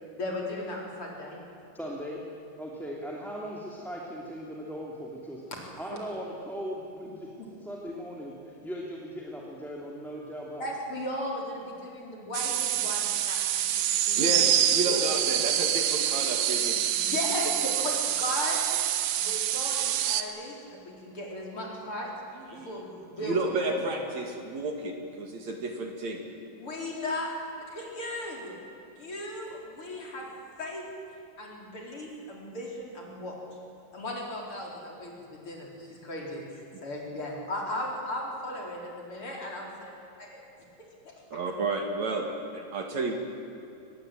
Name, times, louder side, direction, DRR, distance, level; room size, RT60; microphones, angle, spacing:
voice 1, 0.2-1.4 5.5-5.6 5.9-6.0 10.6-13.4 13.7-14.3 14.9-15.0 16.9-18.7 19.2-22.1 22.5-23.4 26.6-28.6 28.9-30.3 30.6-30.9 31.4-33.4 33.9-39.9 40.2-40.5 41.1-41.2, left 1 dB, 40° left, -1 dB, 5.0 m, -36 dB
voice 2, 1.7-2.2 2.6-5.4 5.8-7.3 7.6-10.7, equal, ahead, -3 dB, 2.2 m, -38 dB
sound 1, 12.3-20.2, right 11 dB, 75° right, 2.7 m, -26 dB
voice 3, 14.2-16.8 22.5-22.7 23.2-26.2 41.3-43.2, right 2 dB, 55° right, 3 dB, 3.2 m, -31 dB
24.5 x 20.0 x 9.1 m, 2.7 s
omnidirectional pair, 4.0 m